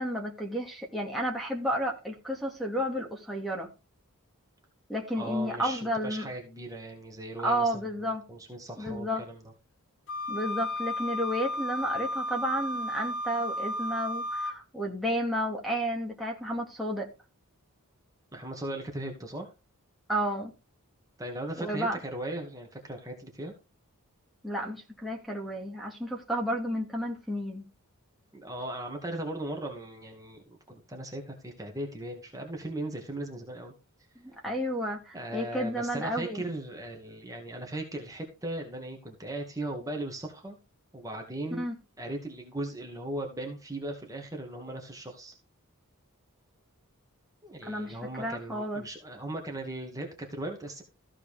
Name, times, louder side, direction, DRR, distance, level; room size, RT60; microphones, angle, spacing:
voice 1, 0.0-3.7 4.9-6.3 7.4-8.2 8.8-9.2 10.3-17.1 20.1-20.5 21.6-22.0 24.4-27.6 34.2-36.4 41.6-41.8 47.6-48.8, equal, ahead, 2.4 m, -32 dB
voice 2, 5.1-7.8 8.3-9.4 18.3-19.5 21.2-23.5 28.3-33.7 35.1-40.6 40.9-41.6 42.0-45.3 47.4-50.8, right 1 dB, 15° right, 2.3 m, -38 dB
Wind instrument woodwind instrument, 10.1-14.6, left 1 dB, 60° left, 1.1 m, -33 dB
15.0 x 5.0 x 5.0 m
head